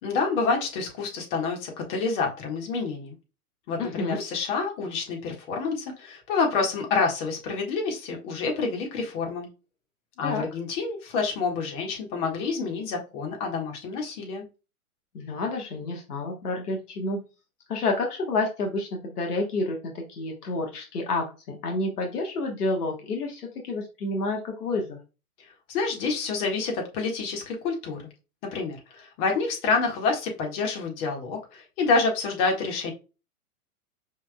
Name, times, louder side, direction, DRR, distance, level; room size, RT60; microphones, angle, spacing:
voice 1, 0.0-3.1 3.7-9.5 10.2-14.4 25.4-28.1 28.5-32.9, left 4 dB, 50° left, 1 dB, 1.8 m, -28 dB
voice 2, 3.8-4.2 10.2-10.4 15.1-17.2 17.7-25.0, left 2 dB, 85° left, 2 dB, 1.4 m, -29 dB
5.2 x 3.6 x 2.3 m, 0.30 s
hypercardioid pair, 120°, 45 cm